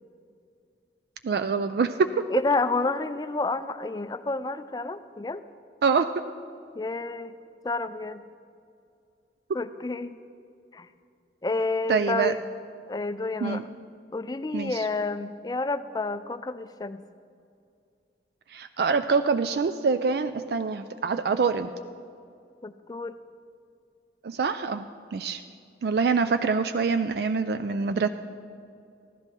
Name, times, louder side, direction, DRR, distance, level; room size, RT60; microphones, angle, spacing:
voice 1, 1.2-2.2 5.8-6.2 11.9-12.3 13.4-13.6 14.5-14.9 18.5-21.7 24.2-25.4 25.8-28.1, right 5 dB, 60° right, 10 dB, 0.3 m, -25 dB
voice 2, 2.3-5.4 6.7-7.3 7.6-8.2 9.5-10.2 10.7-10.9 11.4-12.5 12.9-13.6 14.1-17.0 22.6-23.2, left 3 dB, 20° left, 13 dB, 0.3 m, -29 dB
15.0 x 11.5 x 4.4 m, 2.4 s
head